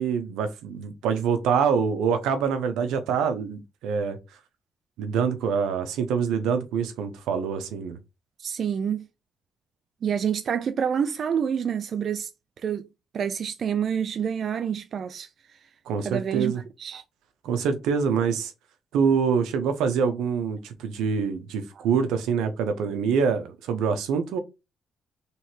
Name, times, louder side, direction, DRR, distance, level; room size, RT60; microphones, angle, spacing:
voice 1, 0.0-4.2 5.0-8.0 15.9-16.6 17.4-18.5 18.9-24.4, right 6 dB, 90° right, 0.9 m, -25 dB
voice 2, 8.4-9.1 10.0-12.3 12.6-12.9 13.1-15.3 16.0-16.5 16.8-17.0 21.8-21.9, right 8 dB, 55° right, 0.4 m, -27 dB
3.4 x 3.1 x 4.4 m
cardioid pair, 90°, 0 cm